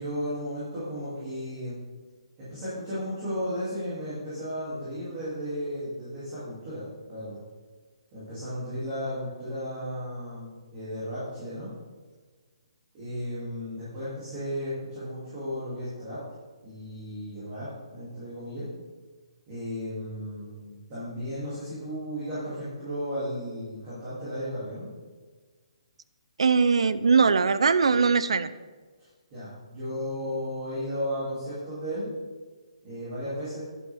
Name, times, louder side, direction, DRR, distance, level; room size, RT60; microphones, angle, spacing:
voice 1, 0.0-1.8 2.4-6.8 7.1-7.4 8.1-11.7 12.9-16.2 16.6-18.6 19.5-24.9 29.3-32.1 32.8-33.6, equal, 20° right, -11 dB, 2.7 m, -34 dB
voice 2, 26.4-28.5, right 5 dB, 70° right, 14 dB, 0.5 m, -21 dB
10.5 x 8.7 x 3.5 m, 1.4 s
hypercardioid pair, 180°, 3 cm